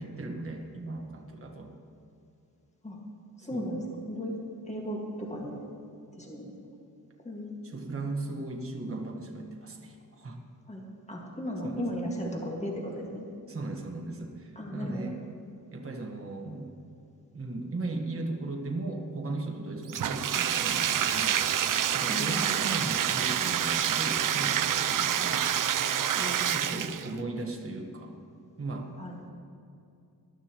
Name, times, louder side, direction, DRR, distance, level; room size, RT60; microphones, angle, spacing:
voice 1, 0.0-1.7 3.5-3.7 7.6-10.4 11.6-11.9 13.5-15.1 15.7-16.7 17.3-21.4 21.9-25.4 26.5-28.1 28.6-28.9, right 2 dB, 35° right, 1 dB, 1.4 m, -37 dB
voice 2, 3.4-4.4 4.6-5.6 6.2-6.5 7.2-7.5 10.7-13.2 14.6-15.1 22.1-22.6 26.2-26.9 29.0-29.2, equal, 20° left, -1 dB, 1.8 m, -36 dB
Bathtub (filling or washing), 19.9-27.2, right 9 dB, 55° right, 0.5 m, -27 dB
19.5 x 12.0 x 3.0 m, 2.6 s
wide cardioid pair, 125°, 38 cm